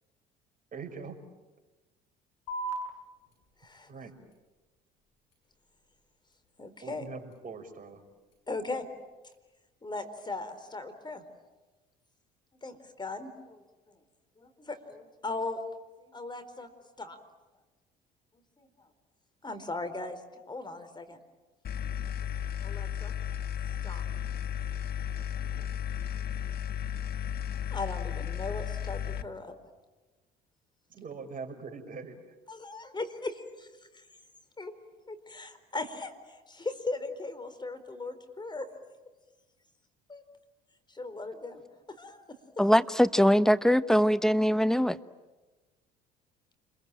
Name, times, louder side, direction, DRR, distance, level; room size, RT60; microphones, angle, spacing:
voice 1, 0.7-1.2 3.9-4.1 6.8-8.0 30.9-32.2, right 4 dB, 40° right, 5.5 m, -42 dB
sound 1, 2.5-9.5, right 2 dB, 80° left, 7.5 m, -45 dB
voice 2, 6.6-7.0 8.5-8.9 9.8-11.2 12.6-14.0 14.4-15.6 16.1-16.7 17.0-17.2 18.6-18.7 19.4-20.2 20.5-21.2 22.6-23.1 23.8-24.0 25.3-25.8 27.7-29.5 32.5-33.7 33.9-34.0 34.6-34.7 35.1-38.7 40.1-40.2 40.9-41.6 42.0-42.2, left 3 dB, 20° left, 4.3 m, -38 dB
sound 2, 21.6-29.2, left 9 dB, 50° left, 1.3 m, -34 dB
voice 3, 42.6-45.0, equal, ahead, 1.1 m, -22 dB
29.0 x 22.5 x 9.1 m
hypercardioid pair, 65°, 21 cm